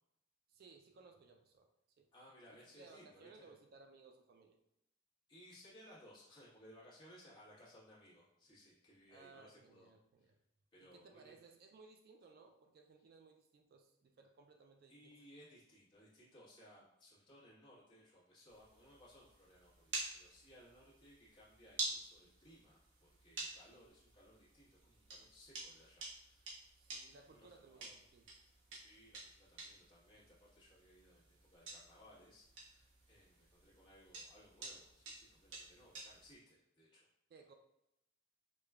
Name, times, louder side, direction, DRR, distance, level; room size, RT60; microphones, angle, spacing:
voice 1, 0.5-1.7 2.0-2.1 2.8-4.6 9.1-10.4 10.8-15.2 26.8-28.3 37.3-37.5, right 4 dB, 50° right, 4 dB, 0.3 m, -62 dB
voice 2, 2.1-3.5 5.3-9.9 10.2-10.3 10.7-11.4 14.9-26.5 27.2-27.9 28.7-37.0, equal, 25° left, -8 dB, 1.2 m, -62 dB
sound 1, 18.5-36.3, right 3 dB, 70° right, 0.9 m, -50 dB
4.8 x 2.2 x 2.3 m, 0.84 s
head